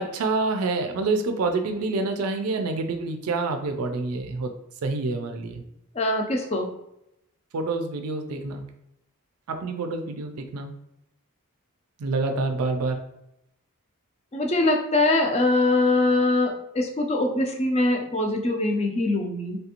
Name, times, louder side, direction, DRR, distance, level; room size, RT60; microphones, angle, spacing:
voice 1, 0.0-4.5 4.8-5.6 7.5-8.6 9.5-10.7 12.0-13.0, right 3 dB, 80° right, 6 dB, 0.4 m, -27 dB
voice 2, 6.0-6.7 14.3-19.6, left 2 dB, 30° left, 2 dB, 0.4 m, -23 dB
3.3 x 2.5 x 2.8 m, 0.83 s
head